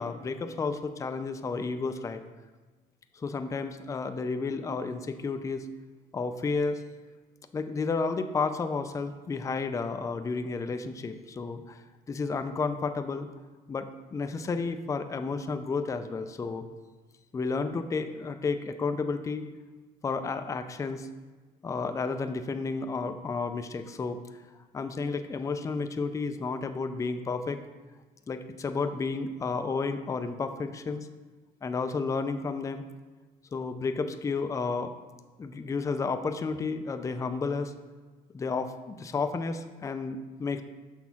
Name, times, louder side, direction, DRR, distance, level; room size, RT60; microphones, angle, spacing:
voice 1, 0.0-2.2 3.1-5.7 6.1-6.8 7.5-11.8 12.1-13.3 13.7-16.6 17.3-19.5 20.0-21.1 21.6-24.2 24.7-27.6 28.3-31.1 31.6-32.8 33.5-34.9 35.4-37.7 38.3-40.6, left 4 dB, 20° left, 8 dB, 0.4 m, -32 dB
6.1 x 3.5 x 5.8 m, 1.3 s
cardioid pair, 110°, 17 cm